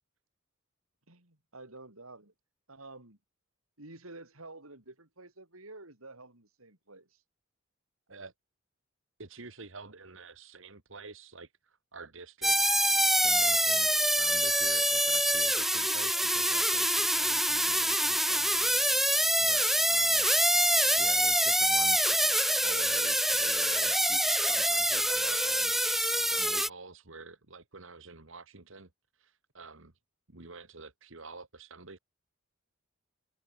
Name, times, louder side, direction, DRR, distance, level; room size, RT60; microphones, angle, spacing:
voice 1, 1.1-2.3 2.7-3.2 3.8-7.2, right 2 dB, 85° right, 6.2 m, -50 dB
voice 2, 9.2-13.9 14.2-20.3 21.0-29.9 30.3-32.0, right 3 dB, 65° right, 2.0 m, -48 dB
sound 1, 12.4-26.7, right 1 dB, ahead, 0.8 m, -26 dB
head